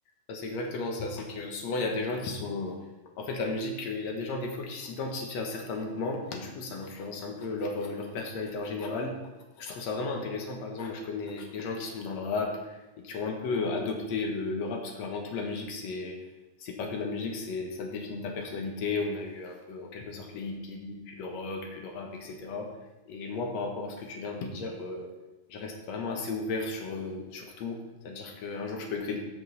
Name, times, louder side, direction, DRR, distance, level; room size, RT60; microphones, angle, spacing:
voice 1, 0.3-2.8 3.2-9.1 9.6-16.2 16.6-22.7 23.1-25.1 25.5-29.2, left 3 dB, 60° left, 2 dB, 2.1 m, -34 dB
14.5 x 5.5 x 4.1 m, 1.1 s
omnidirectional pair, 4.1 m